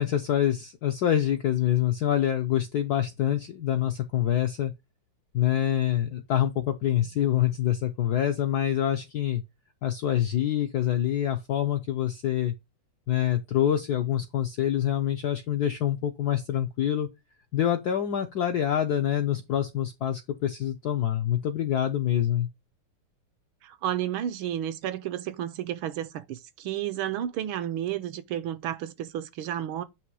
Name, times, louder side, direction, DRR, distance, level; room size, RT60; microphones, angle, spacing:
voice 1, 0.0-4.7 5.3-9.4 9.8-12.5 13.1-17.1 17.5-22.5, left 11 dB, 75° left, 0.9 m, -26 dB
voice 2, 23.6-29.8, right 11 dB, 75° right, 1.4 m, -32 dB
8.5 x 3.0 x 4.7 m
omnidirectional pair, 2.4 m